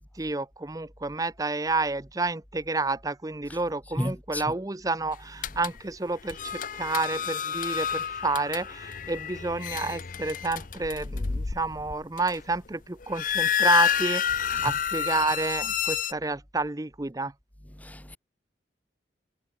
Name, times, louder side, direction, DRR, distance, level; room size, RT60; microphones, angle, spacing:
voice 1, 0.2-17.3, right 3 dB, 20° right, 0.6 m, -30 dB
voice 2, 4.0-4.4 14.6-14.7 17.8-18.2, left 1 dB, 10° left, 0.9 m, -32 dB
sound 1, 5.4-5.8 6.3-12.6 13.0-16.1, left 8 dB, 45° left, 0.6 m, -29 dB
head